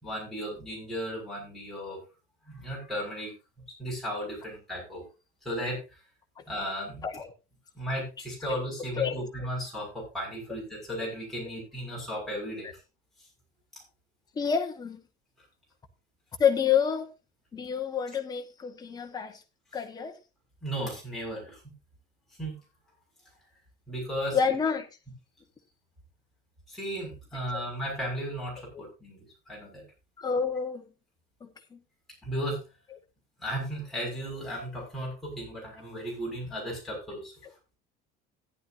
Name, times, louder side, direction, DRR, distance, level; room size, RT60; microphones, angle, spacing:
voice 1, 0.0-2.0 2.5-3.3 3.8-5.0 5.4-5.8 6.5-7.0 7.7-12.8 20.6-21.7 22.4-22.6 23.9-24.4 26.7-29.2 29.5-29.8 32.2-32.6 33.4-37.3, equal, ahead, 6.4 m, -35 dB
voice 2, 8.9-9.3 12.6-12.7 14.3-15.0 16.4-17.1 17.5-19.4 19.7-20.1 24.3-24.9 27.5-27.6 28.7-28.8 30.2-30.8 31.4-31.8 37.4-37.5, left 7 dB, 20° left, 1.4 m, -28 dB
14.5 x 11.0 x 2.7 m
cardioid pair, 170°, 19 cm